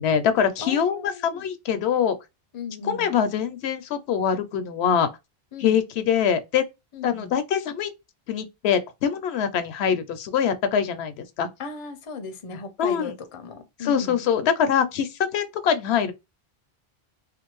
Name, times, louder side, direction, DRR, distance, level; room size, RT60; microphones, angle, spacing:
voice 1, 0.0-2.2 2.8-5.1 5.6-6.6 7.0-7.9 8.3-11.5 12.5-13.1 13.8-16.1, left 8 dB, 85° left, 0.8 m, -24 dB
voice 2, 0.6-1.4 2.5-3.1 5.5-5.8 6.9-7.3 11.6-14.3, left 4 dB, 40° left, 0.5 m, -37 dB
2.6 x 2.4 x 3.0 m
omnidirectional pair, 1.1 m